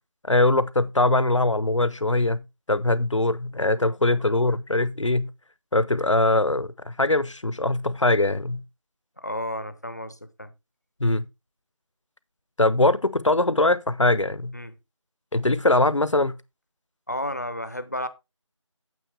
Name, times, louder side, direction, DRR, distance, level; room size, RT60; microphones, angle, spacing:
voice 1, 0.3-2.4 2.7-5.3 5.7-8.6 11.0-11.2 12.6-14.5 15.3-16.3, left 2 dB, 70° left, 0.8 m, -22 dB
voice 2, 9.2-10.5 14.5-14.7 17.1-18.1, left 1 dB, 30° left, 0.7 m, -32 dB
9.3 x 7.6 x 3.3 m
figure-of-eight pair, 175°, 17 cm